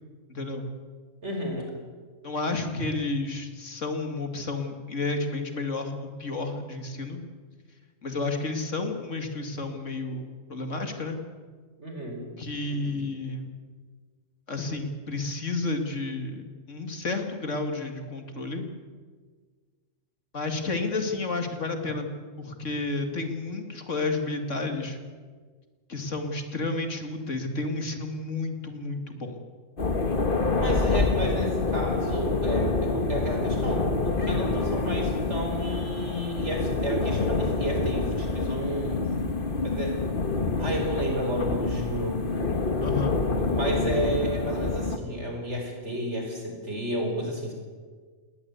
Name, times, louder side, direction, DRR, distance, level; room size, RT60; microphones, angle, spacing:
voice 1, 0.3-0.7 2.2-7.2 8.0-11.2 12.4-13.5 14.5-18.7 20.3-22.1 22.4-25.0 25.9-29.4 42.8-43.2, left 3 dB, 65° left, 5 dB, 2.6 m, -31 dB
voice 2, 1.2-1.7 11.8-12.3 12.7-13.0 30.6-39.1 39.6-40.0 40.6-42.2 43.4-47.5, equal, 60° right, 2 dB, 5.1 m, -32 dB
sound 1, 29.8-45.0, left 3 dB, 40° left, 1.8 m, -27 dB
20.0 x 19.5 x 8.3 m, 1.5 s
omnidirectional pair, 1.4 m